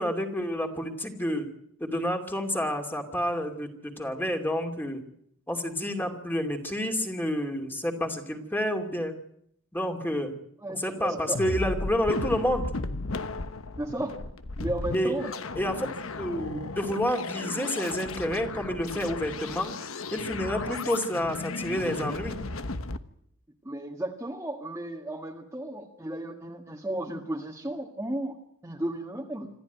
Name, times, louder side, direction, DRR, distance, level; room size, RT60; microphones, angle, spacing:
voice 1, 0.0-1.5 1.8-5.0 5.5-9.1 9.7-10.3 10.8-12.7 14.9-15.1 15.6-15.9 16.2-19.7 20.1-22.4, equal, 10° left, 4 dB, 2.6 m, -29 dB
voice 2, 10.6-11.4 13.8-14.2 14.6-15.3 23.6-28.4 28.6-29.5, right 1 dB, 15° right, 0 dB, 1.8 m, -34 dB
sound 1, 11.3-23.0, left 3 dB, 80° left, 1.2 m, -35 dB
26.5 x 14.0 x 9.3 m, 0.73 s
head